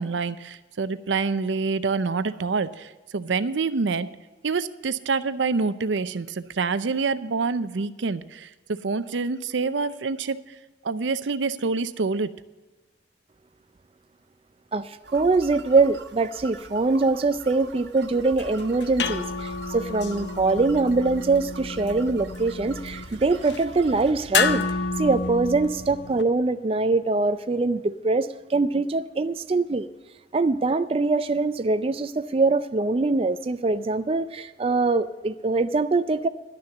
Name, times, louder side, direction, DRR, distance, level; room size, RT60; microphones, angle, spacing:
voice 1, 0.0-4.1 4.4-10.4 10.8-12.3, right 4 dB, 85° right, 14 dB, 0.6 m, -26 dB
voice 2, 14.7-29.9 30.3-36.3, right 3 dB, 30° right, 10 dB, 0.4 m, -23 dB
sound 1, 15.0-24.1, right 3 dB, 65° right, 0.8 m, -44 dB
sound 2, 18.2-26.2, left 5 dB, 70° left, 0.7 m, -30 dB
11.5 x 6.7 x 9.1 m, 1.2 s
head